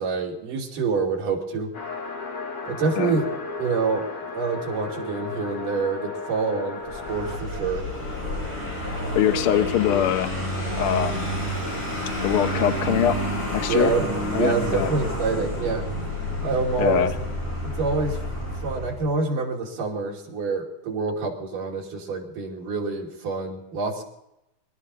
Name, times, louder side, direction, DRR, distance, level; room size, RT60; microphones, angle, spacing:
voice 1, 0.0-1.7 2.7-3.2 3.6-4.0 4.3-7.8 13.7-14.1 14.4-15.9 16.4-17.1 17.6-18.2 18.6-24.0, right 4 dB, 80° right, -1 dB, 4.3 m, -26 dB
sound 1, 1.7-7.4, left 3 dB, 65° left, 3.6 m, -35 dB
Vehicle, 6.8-19.1, equal, 30° left, 6.7 m, -29 dB
voice 2, 9.1-10.3 10.8-11.3 12.2-13.2 13.5-13.9 14.3-14.9 16.8-17.1, left 10 dB, 80° left, 7 dB, 1.2 m, -23 dB
24.5 x 12.5 x 4.1 m, 0.85 s
omnidirectional pair, 3.7 m